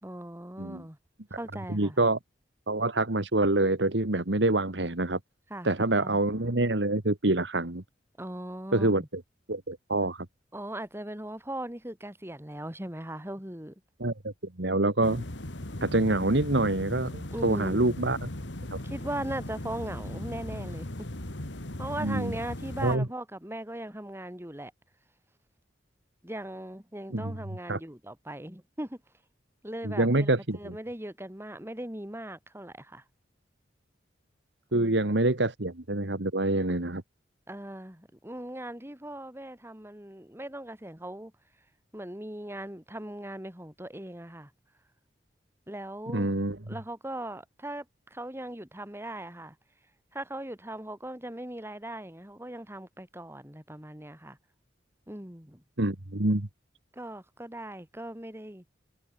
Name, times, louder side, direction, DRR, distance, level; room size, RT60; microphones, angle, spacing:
voice 1, 0.0-1.0 1.3-2.0 5.5-5.7 6.0-6.2 8.2-9.1 10.5-13.7 17.3-17.9 18.8-21.1 21.8-24.7 26.2-29.0 29.6-33.0 34.7-35.1 37.5-41.3 41.9-44.5 45.7-46.3 46.7-49.5 50.1-54.4 55.1-55.6 56.9-58.6, right 1 dB, 15° right, 3.4 m, -39 dB
voice 2, 1.7-2.2 2.7-5.2 5.6-7.8 8.7-9.2 9.5-10.3 14.0-14.3 14.6-15.2 15.8-18.3 22.0-22.3 22.8-23.1 27.1-27.3 27.7-27.8 29.8-30.8 34.7-37.0 46.1-46.6 55.8-56.5, right 2 dB, 75° right, 2.0 m, -26 dB
sound 1, 15.0-23.0, left 1 dB, 85° left, 2.8 m, -38 dB
head